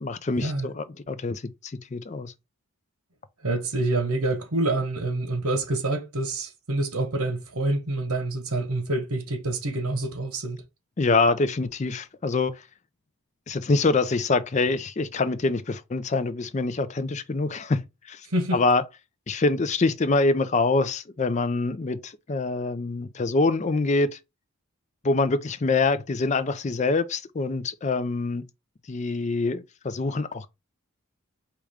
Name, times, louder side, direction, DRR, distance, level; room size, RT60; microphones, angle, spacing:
voice 1, 0.0-2.3 11.0-12.6 13.5-18.3 18.5-18.8 19.3-24.2 25.0-28.4 28.9-30.5, left 3 dB, 30° left, 0.4 m, -25 dB
voice 2, 3.4-10.6 18.3-18.6, right 2 dB, 90° right, 1.2 m, -27 dB
4.8 x 3.0 x 3.5 m
head